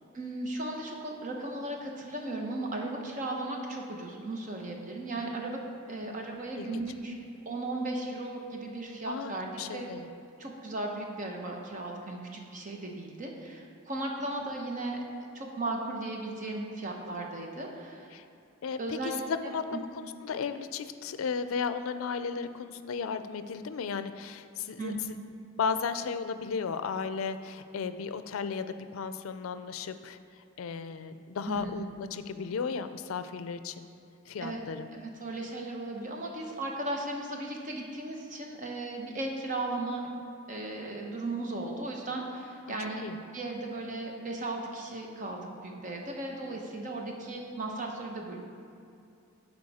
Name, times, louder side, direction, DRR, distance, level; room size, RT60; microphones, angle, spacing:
voice 1, 0.1-5.6 5.9-7.1 7.4-9.9 10.4-15.0 15.3-18.1 18.8-19.8 24.8-25.0 31.5-31.7 34.4-34.6 34.9-40.1 40.5-43.0 43.3-48.4, right 2 dB, 40° right, 1 dB, 0.9 m, -36 dB
voice 2, 9.1-10.1 18.1-18.2 18.6-24.9 25.6-30.2 30.6-33.8 34.3-34.9 42.6-42.7 43.0-43.2, left 5 dB, 85° left, 11 dB, 0.4 m, -35 dB
11.0 x 4.6 x 4.2 m, 2.6 s
head